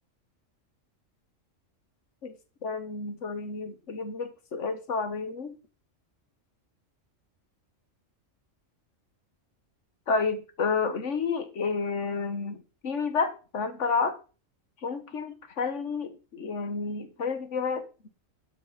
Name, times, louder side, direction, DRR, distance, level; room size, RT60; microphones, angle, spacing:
voice 1, 2.2-5.5 10.1-12.6 12.8-14.2 14.8-18.1, left 4 dB, 65° left, 1.7 m, -30 dB
12.5 x 6.3 x 4.2 m
omnidirectional pair, 1.3 m